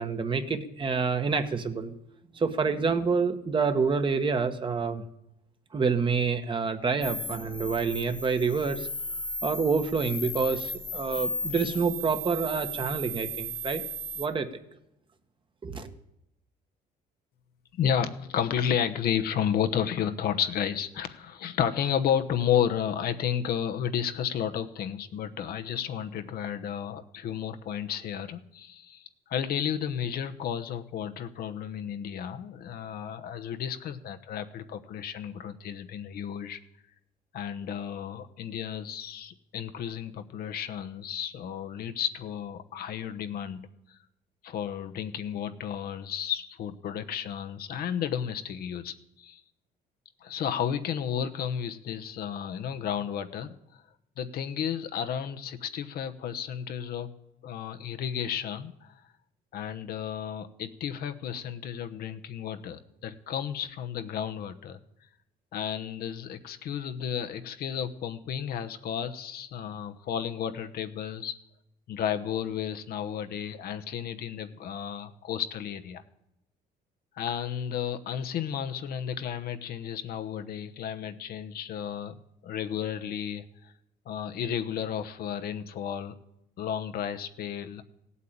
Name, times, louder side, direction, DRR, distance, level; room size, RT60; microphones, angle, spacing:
voice 1, 0.0-1.9 2.3-5.0 5.7-8.9 9.4-13.8 14.2-14.5 15.6-15.9, right 5 dB, 30° right, 7 dB, 1.4 m, -27 dB
sound 1, 7.0-14.3, equal, 30° left, 1.4 m, -35 dB
voice 2, 17.7-36.6 37.3-44.0 44.4-49.4 50.2-53.8 54.2-57.1 57.4-58.9 59.5-64.8 65.5-71.3 71.9-76.0 77.2-82.2 82.4-83.7 84.1-86.2 86.6-87.8, left 9 dB, 65° left, 9 dB, 1.1 m, -32 dB
16.0 x 8.4 x 8.7 m, 0.87 s
cardioid pair, 110°, 17 cm